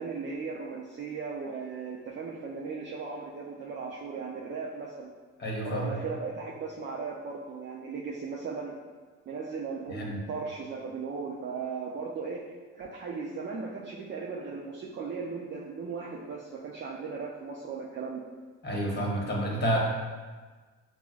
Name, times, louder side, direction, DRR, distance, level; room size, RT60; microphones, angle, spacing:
voice 1, 0.0-5.1 5.6-8.8 9.3-12.4 12.7-18.2, right 5 dB, 40° right, -3 dB, 0.4 m, -37 dB
voice 2, 5.4-5.9 9.9-10.2 18.6-19.8, right 1 dB, 35° left, -3 dB, 1.0 m, -29 dB
5.8 x 2.0 x 2.3 m, 1.4 s
cardioid pair, 90°, 30 cm